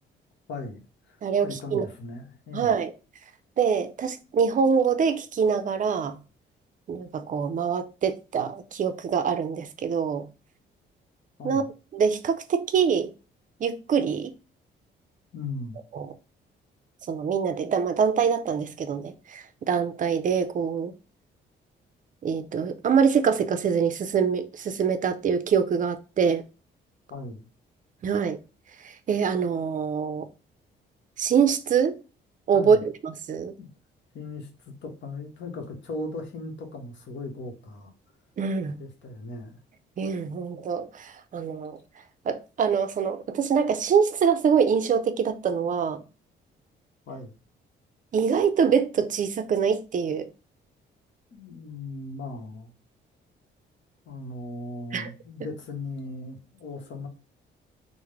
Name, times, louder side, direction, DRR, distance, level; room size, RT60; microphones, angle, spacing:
voice 1, 0.5-0.8 1.0-2.8 11.4-11.7 15.3-15.8 27.1-27.4 32.5-32.8 33.6-33.7 34.1-37.9 38.8-39.5 47.1-47.3 51.3-52.7 54.0-57.1, left 2 dB, 65° left, 1.0 m, -38 dB
voice 2, 1.2-1.9 2.5-2.9 3.6-6.2 6.9-10.3 11.4-11.6 11.9-13.1 13.6-14.3 15.9-16.1 17.1-20.9 22.2-26.4 28.0-28.4 28.8-30.3 31.2-32.0 32.5-33.5 38.4-38.8 40.0-41.8 42.3-46.0 48.1-50.3 54.9-55.1, right 6 dB, 40° right, 0.5 m, -24 dB
3.5 x 2.1 x 3.2 m
cardioid pair, 90°, 20 cm